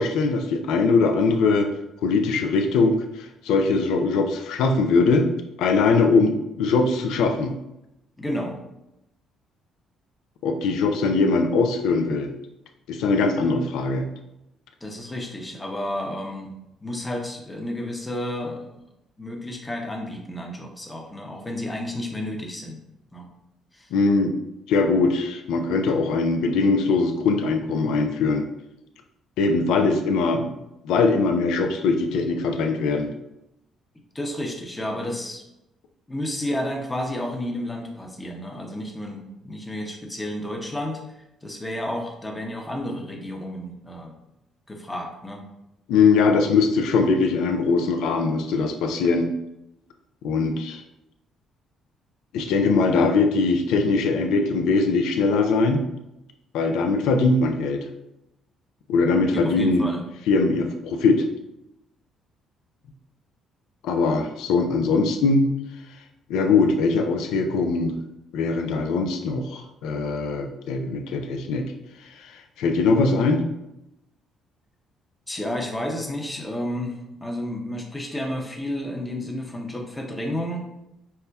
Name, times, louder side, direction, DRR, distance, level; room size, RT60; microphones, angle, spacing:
voice 1, 0.0-1.7 2.0-3.0 3.4-5.3 5.6-7.5 10.4-12.3 12.9-14.1 23.9-24.3 24.7-28.5 29.4-30.5 30.8-33.1 45.9-49.3 50.2-50.8 52.3-55.8 56.5-57.9 58.9-59.9 60.3-61.3 63.8-65.5 66.3-68.0 68.3-71.7 72.6-73.4, left 4 dB, 80° left, 5 dB, 0.4 m, -21 dB
voice 2, 8.2-8.6 14.8-16.5 16.8-18.7 19.2-22.8 23.1-23.3 23.7-23.9 34.1-35.4 36.1-41.0 41.4-44.1 44.7-45.4 59.3-60.0 75.3-80.7, left 1 dB, 15° left, 1 dB, 0.8 m, -31 dB
5.4 x 2.1 x 2.2 m, 0.87 s
supercardioid pair, 75°, 0 cm